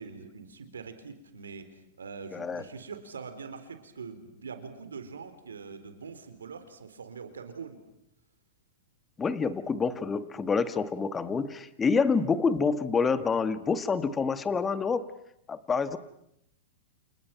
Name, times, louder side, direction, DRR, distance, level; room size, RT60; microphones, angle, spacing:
voice 1, 0.0-7.8, right 5 dB, 90° right, 9 dB, 3.9 m, -43 dB
voice 2, 2.3-2.6 9.2-15.1 15.5-16.0, left 5 dB, 20° left, 12 dB, 1.8 m, -27 dB
29.5 x 29.5 x 6.0 m, 0.76 s
hypercardioid pair, 110°, 0 cm